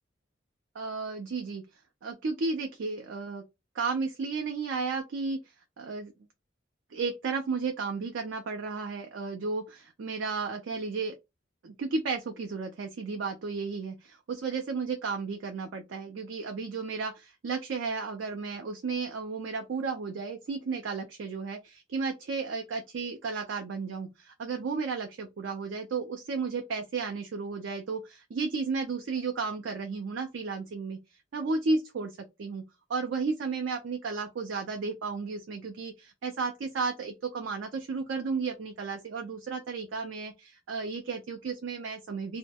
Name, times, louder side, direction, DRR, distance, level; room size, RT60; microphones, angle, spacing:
voice 1, 0.7-1.7 2.0-3.4 3.7-6.1 6.9-11.2 11.6-42.4, right 4 dB, 75° right, 0.4 m, -33 dB
2.2 x 2.1 x 2.7 m
head